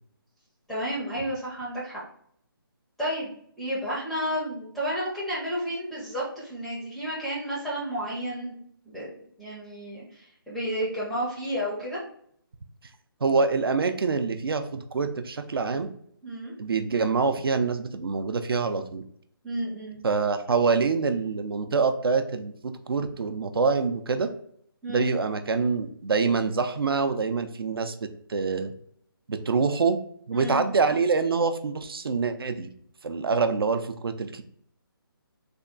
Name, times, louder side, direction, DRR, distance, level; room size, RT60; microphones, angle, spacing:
voice 1, 0.7-2.0 3.0-8.6 8.8-9.1 9.4-12.0 16.2-16.5 19.4-20.0 24.8-25.1 30.3-30.6, equal, ahead, -8 dB, 0.4 m, -31 dB
voice 2, 13.2-15.9 16.6-19.0 20.0-24.3 24.9-27.9 28.3-28.7 29.3-30.0 30.3-32.7 33.0-34.4, right 4 dB, 75° right, 8 dB, 0.5 m, -25 dB
3.5 x 2.3 x 3.7 m, 0.65 s
hypercardioid pair, 165°, 12 cm